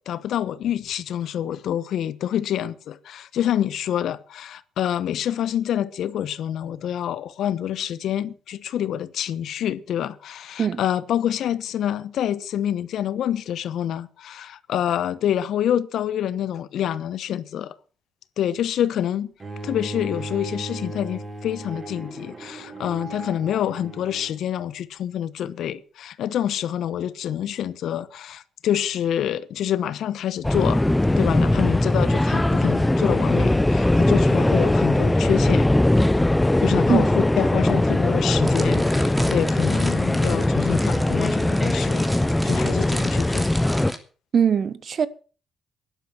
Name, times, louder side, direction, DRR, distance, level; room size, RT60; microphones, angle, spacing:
voice 1, 0.0-17.7 18.4-19.3 19.6-30.8 31.2-35.7 36.6-37.1 37.4-42.1 42.4-43.5, left 10 dB, 75° left, 1.0 m, -27 dB
Bowed string instrument, 19.4-24.4, right 2 dB, 30° right, 3.5 m, -36 dB
sound 1, 30.4-43.9, left 1 dB, 10° left, 0.6 m, -20 dB
sound 2, 38.4-44.0, equal, 10° right, 2.9 m, -34 dB
voice 2, 44.3-45.1, right 7 dB, 50° right, 1.1 m, -21 dB
11.5 x 11.5 x 6.3 m
cardioid pair, 90°, 0 cm